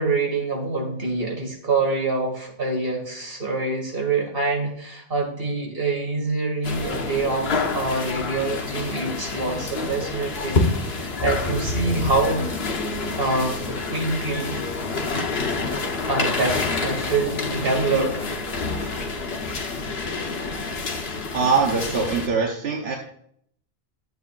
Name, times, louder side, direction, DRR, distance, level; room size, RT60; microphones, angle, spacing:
voice 1, 0.0-12.4 13.2-14.6 16.1-18.2, right 3 dB, 65° right, -1 dB, 2.7 m, -25 dB
sound 1, 6.6-22.3, left 3 dB, 80° left, 1.3 m, -28 dB
voice 2, 21.3-23.0, right 5 dB, 90° right, 0 dB, 1.3 m, -22 dB
12.5 x 7.9 x 2.5 m, 0.67 s
omnidirectional pair, 1.0 m